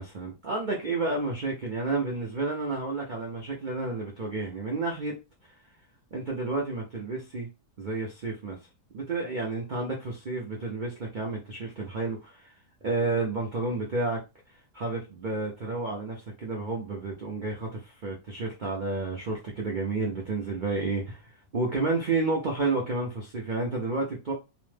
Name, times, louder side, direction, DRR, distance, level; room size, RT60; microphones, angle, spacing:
voice 1, 0.0-5.1 5.4-5.5 6.1-7.5 7.8-8.6 8.9-12.5 12.8-14.2 14.7-21.2 21.5-24.3, right 3 dB, 80° right, 0.4 m, -31 dB
2.9 x 2.1 x 3.2 m
omnidirectional pair, 1.7 m